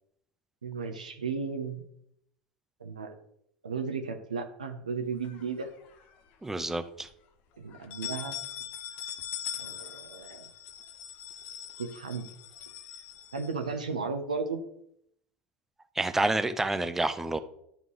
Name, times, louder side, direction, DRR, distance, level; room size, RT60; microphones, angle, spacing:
voice 1, 0.6-1.8 2.8-3.1 3.6-5.7 7.6-8.4 9.6-10.5 11.8-12.2 13.3-14.6, right 5 dB, 85° right, 5 dB, 0.8 m, -34 dB
sound 1, 5.2-6.2 6.6-6.7 7.0-7.1 7.7-13.9, left 10 dB, 50° left, 0.9 m, -41 dB
voice 2, 6.4-7.1 16.0-17.4, right 2 dB, 10° right, 11 dB, 0.7 m, -28 dB
12.0 x 5.3 x 3.2 m, 0.73 s
figure-of-eight pair, 75°, 4 cm